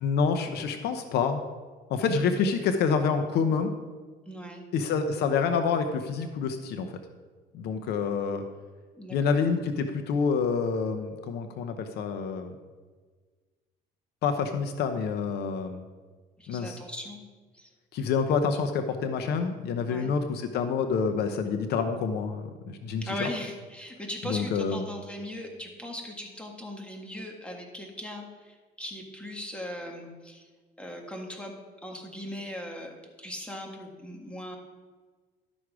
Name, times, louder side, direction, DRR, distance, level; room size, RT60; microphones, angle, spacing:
voice 1, 0.0-1.4 1.9-3.7 4.7-6.9 7.5-8.4 9.1-12.5 14.2-15.9 16.5-16.8 17.9-23.3 24.2-24.8, left 5 dB, 75° left, 7 dB, 0.8 m, -27 dB
voice 2, 4.3-4.7 9.0-9.2 16.4-17.2 17.5-17.7 19.9-20.1 23.0-30.5 30.8-31.6 31.8-34.6, left 1 dB, 5° left, 1 dB, 1.8 m, -39 dB
12.0 x 6.2 x 4.8 m, 1.4 s
cardioid pair, 110°, 17 cm